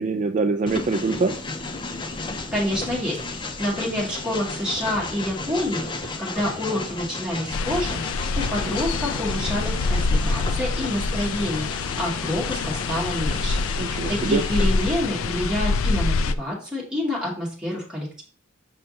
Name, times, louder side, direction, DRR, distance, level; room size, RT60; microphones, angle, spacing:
voice 1, 0.0-1.3 13.8-14.4, right 4 dB, 40° right, 8 dB, 0.3 m, -24 dB
Train, 0.7-14.9, left 3 dB, 25° left, 0.5 m, -34 dB
voice 2, 2.5-8.0 8.4-18.2, left 1 dB, 5° right, -5 dB, 2.3 m, -28 dB
sound 1, 7.5-16.3, left 3 dB, 80° left, 0.4 m, -26 dB
6.5 x 5.5 x 2.8 m, 0.41 s
head